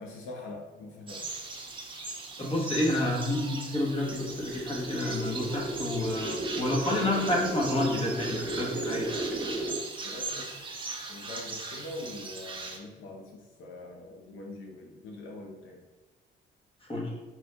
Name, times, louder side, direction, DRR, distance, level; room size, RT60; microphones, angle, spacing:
voice 1, 0.0-1.4 10.0-10.5 11.1-15.8, left 2 dB, 80° left, 1 dB, 0.6 m, -43 dB
sound 1, 1.1-12.8, right 3 dB, 25° right, 0.8 m, -39 dB
voice 2, 2.4-9.2 16.9-17.1, left 1 dB, 30° left, -2 dB, 1.3 m, -29 dB
sound 2, 4.0-9.8, right 1 dB, ahead, 1.1 m, -34 dB
4.8 x 2.6 x 3.4 m, 1.2 s
cardioid pair, 90°, 20 cm